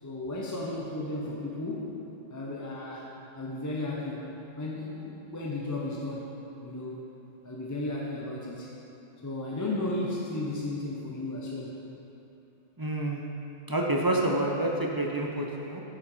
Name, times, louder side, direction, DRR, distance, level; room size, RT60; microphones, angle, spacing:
voice 1, 0.0-2.0 2.3-3.1 3.3-4.2 4.6-6.3 6.6-7.0 7.4-8.7 9.2-11.8, left 2 dB, 20° left, -4 dB, 0.6 m, -34 dB
voice 2, 12.8-13.2 13.7-15.8, right 1 dB, 35° right, -1 dB, 0.3 m, -28 dB
8.5 x 5.8 x 4.9 m, 2.9 s
omnidirectional pair, 1.3 m